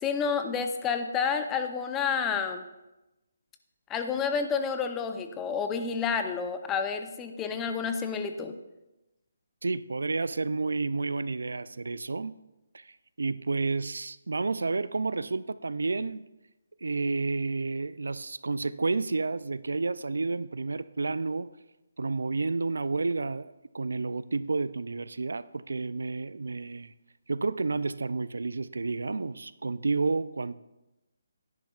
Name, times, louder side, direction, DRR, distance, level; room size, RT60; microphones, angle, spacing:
voice 1, 0.0-2.6 3.9-8.5, left 6 dB, 15° left, 0.6 m, -29 dB
voice 2, 9.6-12.4 12.7-12.9 13.2-16.2 16.8-21.5 22.0-26.9 27.3-30.5, right 3 dB, 85° right, 0.4 m, -30 dB
16.0 x 10.5 x 2.4 m
hypercardioid pair, 160°, 0 cm